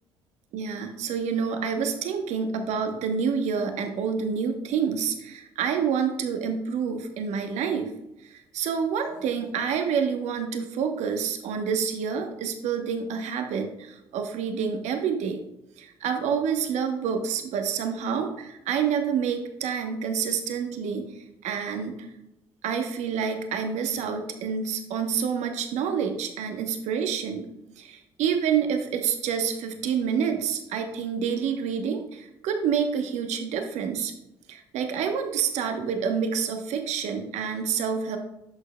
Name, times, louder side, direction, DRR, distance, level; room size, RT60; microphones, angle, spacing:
voice 1, 0.5-7.9 8.2-15.4 15.8-22.1 22.6-27.5 27.8-34.1 34.5-38.2, right 7 dB, 65° right, 6 dB, 1.0 m, -28 dB
10.5 x 6.7 x 2.2 m, 0.89 s
hypercardioid pair, 55°, 13 cm